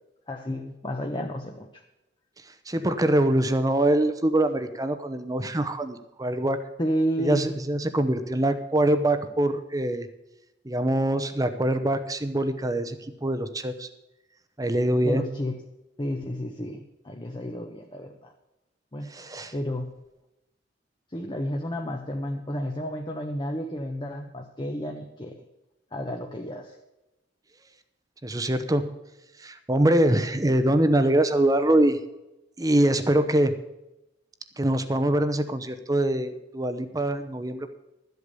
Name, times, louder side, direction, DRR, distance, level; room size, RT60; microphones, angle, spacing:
voice 1, 0.3-1.8 6.8-7.5 15.0-15.6 16.0-18.3 18.9-19.1 19.5-19.9 21.1-25.4 25.9-26.7, equal, 25° left, 3 dB, 1.0 m, -31 dB
voice 2, 2.7-6.6 7.2-10.1 10.6-13.9 14.6-15.3 19.1-19.5 28.2-28.9 29.4-32.0 32.6-33.5 34.6-37.7, right 1 dB, 20° right, 10 dB, 0.8 m, -24 dB
13.0 x 8.2 x 6.9 m, 0.94 s
head